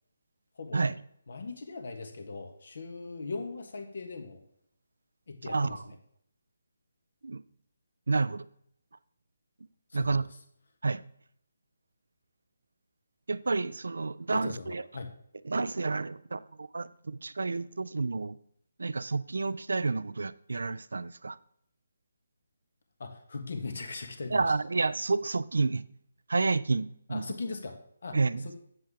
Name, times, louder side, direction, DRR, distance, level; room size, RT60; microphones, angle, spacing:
voice 1, 1.3-4.4 5.3-5.9 9.9-10.2 14.3-15.1 23.0-24.5 27.1-28.5, left 3 dB, 65° left, 1.6 m, -39 dB
voice 2, 5.5-5.8 7.2-7.4 8.1-8.5 9.9-10.3 10.8-11.0 13.3-14.8 15.5-18.4 18.8-21.4 24.3-25.8 26.3-27.2 28.1-28.5, right 3 dB, 75° right, 0.4 m, -30 dB
8.4 x 7.6 x 3.7 m
figure-of-eight pair, 155°, 0 cm